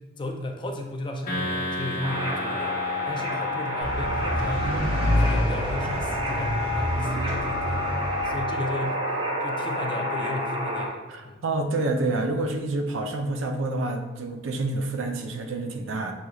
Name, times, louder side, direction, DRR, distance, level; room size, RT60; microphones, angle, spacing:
voice 1, 0.0-11.4, left 1 dB, 25° left, 3 dB, 0.4 m, -35 dB
sound 1, 1.3-4.7, equal, 45° left, 1.0 m, -34 dB
sound 2, 2.0-10.9, left 1 dB, 25° right, 0.6 m, -29 dB
sound 3, 3.8-8.4, equal, 85° right, 1.2 m, -27 dB
voice 2, 11.1-16.1, right 2 dB, 70° right, 4 dB, 0.5 m, -28 dB
6.2 x 2.9 x 2.3 m, 1.1 s
head